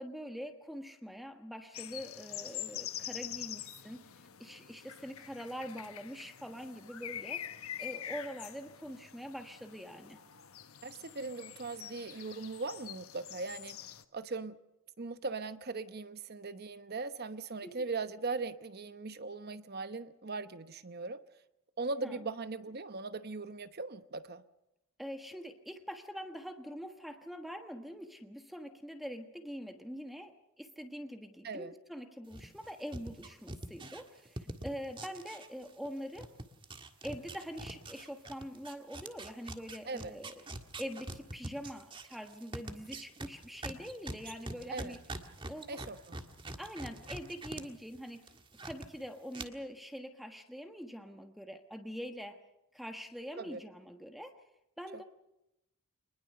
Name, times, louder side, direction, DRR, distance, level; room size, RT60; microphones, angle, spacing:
voice 1, 0.0-4.1 4.4-7.4 7.8-10.2 17.6-17.8 22.0-22.2 25.0-36.3 37.0-40.4 40.8-45.0 45.5-45.8 46.6-48.3 48.6-52.4 52.7-54.4 54.8-55.0, equal, ahead, 6 dB, 1.3 m, -44 dB
sound 1, 1.7-14.0, left 11 dB, 80° left, 1.3 m, -45 dB
voice 2, 10.8-13.8 14.1-14.6 15.0-21.2 21.8-24.4 31.4-31.7 39.8-40.1 44.7-45.0 45.7-46.2 53.4-53.6, right 3 dB, 45° right, 12 dB, 0.9 m, -39 dB
sound 2, 32.3-35.9 36.1-47.6 47.9-48.9 49.3-49.4, right 2 dB, 25° right, 1.7 m, -44 dB
25.0 x 20.5 x 6.7 m, 0.87 s
head